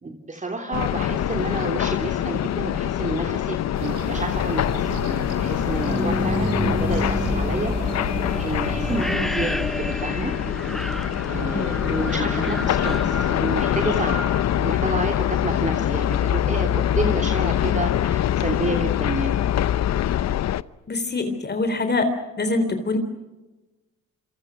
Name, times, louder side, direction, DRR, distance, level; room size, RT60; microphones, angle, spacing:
voice 1, 0.0-10.3 11.3-14.2 14.6-19.4, right 2 dB, 25° right, 3 dB, 3.1 m, -30 dB
sound 1, 0.7-20.6, left 11 dB, 60° left, 0.8 m, -24 dB
sound 2, 3.7-9.2, right 7 dB, 80° right, 4.3 m, -35 dB
sound 3, 5.6-15.5, equal, ahead, 0.9 m, -30 dB
voice 2, 20.9-22.1 22.4-23.0, left 3 dB, 35° left, 9 dB, 3.6 m, -24 dB
28.0 x 26.0 x 6.3 m, 1.1 s
cardioid pair, 90°, 30 cm